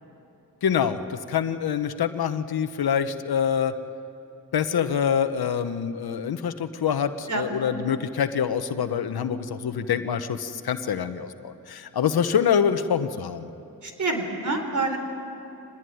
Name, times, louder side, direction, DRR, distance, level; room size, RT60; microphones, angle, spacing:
voice 1, 0.6-3.7 4.5-13.5, left 8 dB, 75° left, 10 dB, 1.2 m, -25 dB
voice 2, 13.8-15.0, right 3 dB, 50° right, 5 dB, 4.1 m, -27 dB
24.0 x 20.0 x 9.4 m, 3.0 s
cardioid pair, 60°, 37 cm